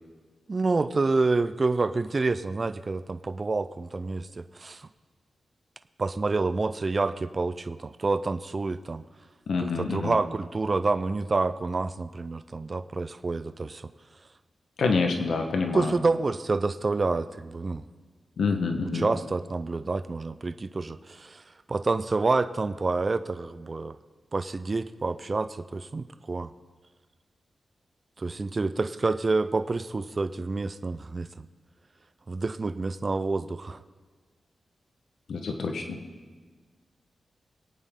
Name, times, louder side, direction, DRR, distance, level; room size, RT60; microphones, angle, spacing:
voice 1, 0.5-4.9 6.0-9.0 9.6-13.9 15.7-17.8 18.8-24.0 24.3-26.5 28.2-31.5 32.3-33.8, right 3 dB, 35° right, 11 dB, 0.5 m, -28 dB
voice 2, 9.5-10.2 14.8-15.9 18.4-19.1 35.3-36.0, left 4 dB, 80° left, 4 dB, 1.2 m, -27 dB
24.5 x 9.0 x 3.8 m, 1.4 s
wide cardioid pair, 90°, 0 cm